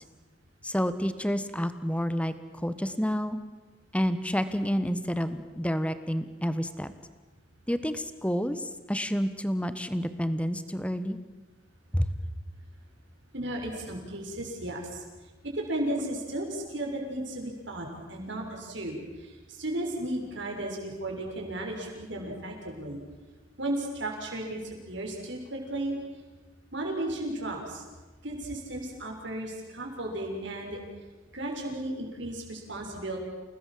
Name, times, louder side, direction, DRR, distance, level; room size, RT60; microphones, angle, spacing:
voice 1, 0.6-3.4 3.9-6.9 7.7-11.2 11.9-12.1, equal, 5° left, 11 dB, 1.2 m, -29 dB
voice 2, 13.3-15.0 15.4-23.0 23.6-26.0 26.7-27.8 28.2-30.8 31.3-33.2, right 1 dB, 65° right, 1 dB, 6.6 m, -34 dB
29.5 x 19.0 x 7.7 m, 1.2 s
head